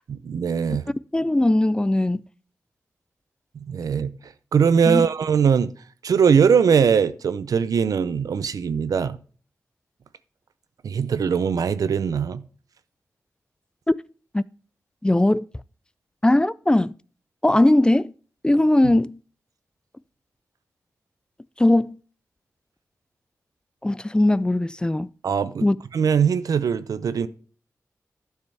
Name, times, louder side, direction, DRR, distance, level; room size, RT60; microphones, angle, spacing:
voice 1, 0.1-0.8 3.5-4.1 4.5-5.7 6.0-9.2 10.8-12.4 18.8-18.9 25.2-25.7 25.9-27.3, right 6 dB, 80° right, 0.6 m, -21 dB
voice 2, 1.1-2.2 4.9-5.0 13.9-14.0 14.3-14.4 15.0-15.5 16.2-16.9 17.4-18.1 18.4-19.2 21.6-22.0 23.8-25.1 25.6-25.8, left 1 dB, 15° left, 0.4 m, -19 dB
11.5 x 6.5 x 3.4 m
cardioid pair, 60°, 6 cm